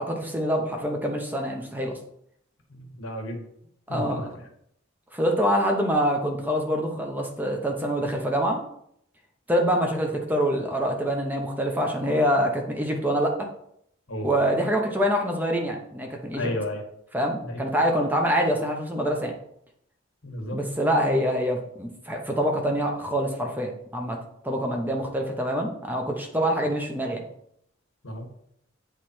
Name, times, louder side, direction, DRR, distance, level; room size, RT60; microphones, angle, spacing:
voice 1, 0.0-2.0 3.9-4.2 5.1-8.6 9.5-13.5 14.2-16.5 17.1-19.3 20.5-24.2 24.4-27.2, equal, 10° right, 1 dB, 0.8 m, -25 dB
voice 2, 2.7-3.4 3.9-4.4 14.1-14.6 16.3-16.8 17.4-17.6 20.2-20.6 28.0-28.3, left 1 dB, 75° left, 2 dB, 1.3 m, -33 dB
8.1 x 3.2 x 4.3 m, 0.73 s
head